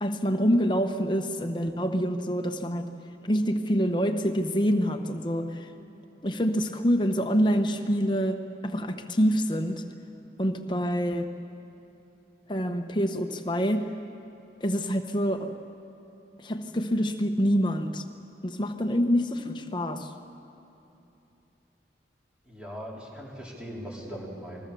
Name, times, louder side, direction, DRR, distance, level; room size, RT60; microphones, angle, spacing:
voice 1, 0.0-2.9 3.2-5.7 6.2-9.8 10.4-11.3 12.5-13.9 14.6-15.5 16.4-18.0 18.4-20.1, equal, 25° left, 6 dB, 1.1 m, -26 dB
voice 2, 22.4-24.6, equal, 5° right, -4 dB, 4.0 m, -40 dB
29.0 x 21.5 x 7.0 m, 2.9 s
head